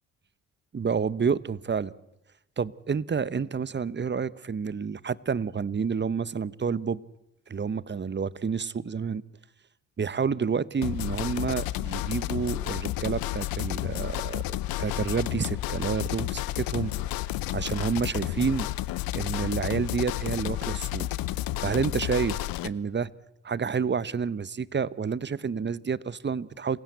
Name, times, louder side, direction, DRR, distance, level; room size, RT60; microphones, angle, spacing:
voice 1, 0.7-1.9 2.6-7.0 7.5-9.2 10.0-16.9 17.5-18.7 19.1-21.1 21.6-23.1 23.4-26.8, right 6 dB, 30° right, 1.0 m, -29 dB
sound 1, 10.8-22.7, left 15 dB, 80° left, 0.9 m, -31 dB
27.5 x 16.5 x 8.1 m
supercardioid pair, 50°, 35 cm